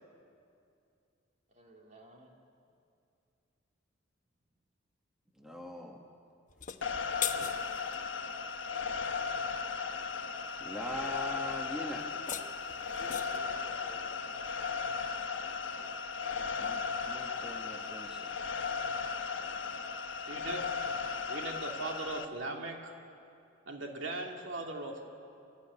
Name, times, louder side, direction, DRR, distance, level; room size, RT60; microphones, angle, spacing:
voice 1, 1.5-2.3 6.8-7.0 13.0-14.5 15.8-15.9 19.3-19.8, equal, 35° right, 0 dB, 3.1 m, -56 dB
voice 2, 5.4-6.0 10.6-12.0 16.6-16.8 17.1-18.3, equal, 5° right, 0 dB, 1.4 m, -42 dB
sound 1, 6.5-8.0 12.0-13.5, left 9 dB, 40° left, 1.0 m, -39 dB
sound 2, 6.8-22.3, left 5 dB, 70° left, 1.2 m, -36 dB
voice 3, 20.3-20.6 21.3-22.9 23.7-25.0, right 2 dB, 70° right, 2 dB, 2.4 m, -39 dB
28.0 x 14.5 x 9.9 m, 2.5 s
head